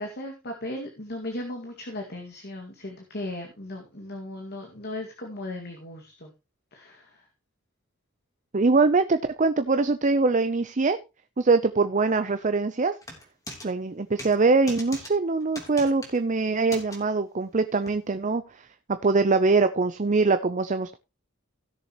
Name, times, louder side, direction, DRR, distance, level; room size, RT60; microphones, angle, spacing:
voice 1, 0.0-6.3 6.7-7.1, left 1 dB, 55° left, 2 dB, 2.1 m, -37 dB
voice 2, 8.5-11.0 11.4-13.0 13.6-18.7 19.0-21.0, right 3 dB, 40° right, 9 dB, 0.7 m, -23 dB
sound 1, 13.0-13.7 14.2-14.4 14.7-15.1 15.6-16.2 16.7-17.0 17.9-18.0, left 1 dB, 15° left, 3.2 m, -39 dB
17.0 x 6.9 x 3.0 m, 0.27 s
head